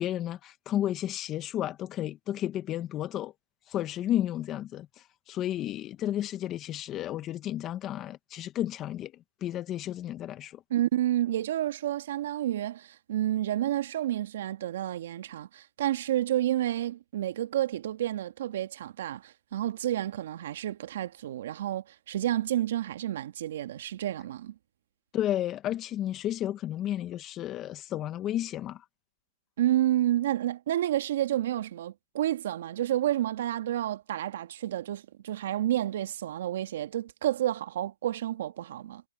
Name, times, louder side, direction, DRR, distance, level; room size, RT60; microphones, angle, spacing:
voice 1, 0.0-3.3 3.7-4.9 5.3-9.1 9.4-10.6 25.1-28.8, left 12 dB, 10° left, 1.1 m, -32 dB
voice 2, 10.7-24.5 29.6-39.0, right 12 dB, 35° right, 1.7 m, -30 dB
hypercardioid pair, 165°, 0 cm